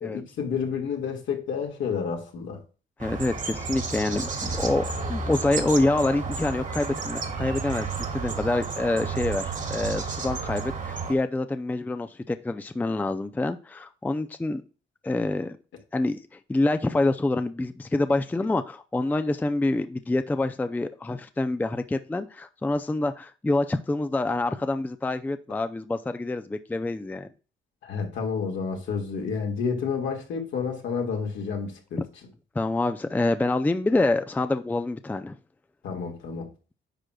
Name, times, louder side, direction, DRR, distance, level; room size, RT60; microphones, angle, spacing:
voice 1, 0.0-2.6 27.8-32.0 35.8-36.5, left 6 dB, 75° left, 1.9 m, -30 dB
voice 2, 3.0-14.6 15.0-15.6 15.9-27.3 32.6-35.4, left 2 dB, 10° left, 0.4 m, -26 dB
sound 1, 3.0-11.2, right 4 dB, 40° right, 1.6 m, -32 dB
10.0 x 6.1 x 2.3 m
cardioid pair, 90°, 20 cm